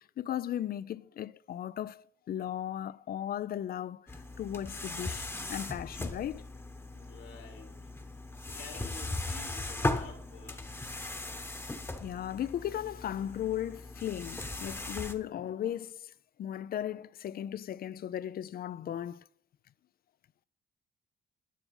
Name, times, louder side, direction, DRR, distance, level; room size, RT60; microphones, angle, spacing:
voice 1, 0.0-4.1 4.4-6.4 12.0-16.0 16.4-19.2, left 11 dB, 50° left, 0.4 m, -36 dB
sound 1, 4.1-15.1, left 2 dB, 10° left, 1.0 m, -38 dB
voice 2, 6.9-7.7 8.5-10.8, left 5 dB, 80° left, 2.6 m, -50 dB
10.0 x 7.1 x 5.4 m
cardioid pair, 90°, 20 cm